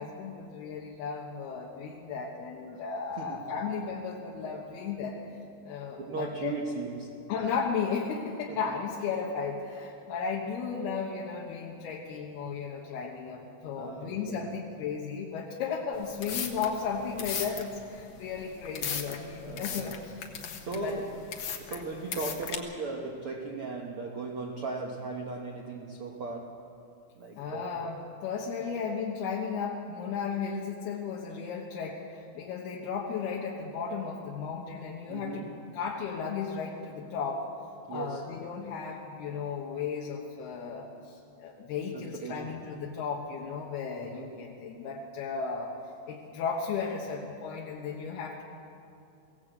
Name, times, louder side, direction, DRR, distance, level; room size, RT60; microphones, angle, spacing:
voice 1, 0.0-5.2 5.6-6.5 7.3-20.1 20.5-21.0 27.4-35.5 35.7-37.4 37.9-45.7 46.1-48.4, left 6 dB, 80° left, -2 dB, 3.3 m, -35 dB
voice 2, 3.1-3.4 6.0-7.2 8.5-8.6 13.7-14.5 19.4-20.0 20.6-21.2 21.6-26.6 27.2-27.8 35.1-35.6 37.9-38.3 41.9-42.5 44.0-44.4, right 3 dB, 85° right, 2 dB, 1.2 m, -37 dB
sound 1, 15.9-22.6, left 7 dB, 55° left, 2.0 m, -37 dB
22.5 x 17.0 x 7.9 m, 2.7 s
omnidirectional pair, 4.5 m